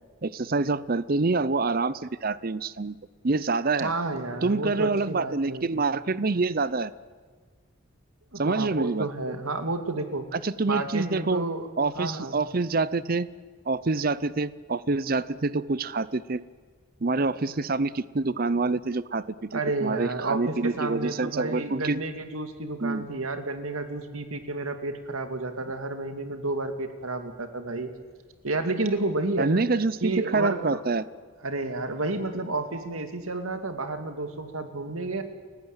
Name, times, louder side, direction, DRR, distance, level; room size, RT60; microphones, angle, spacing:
voice 1, 0.2-3.0 3.2-3.9 4.4-6.9 8.4-9.1 10.3-11.4 11.8-13.3 13.7-16.4 17.0-22.0 22.8-23.1 29.4-31.0, right 3 dB, 45° right, 17 dB, 0.6 m, -26 dB
voice 2, 3.8-5.7 8.3-10.3 10.7-11.7 11.9-12.4 19.5-27.9 28.4-29.6 30.0-30.8 31.4-35.2, right 2 dB, 85° right, 7 dB, 2.3 m, -31 dB
29.5 x 15.5 x 8.9 m, 1.5 s
head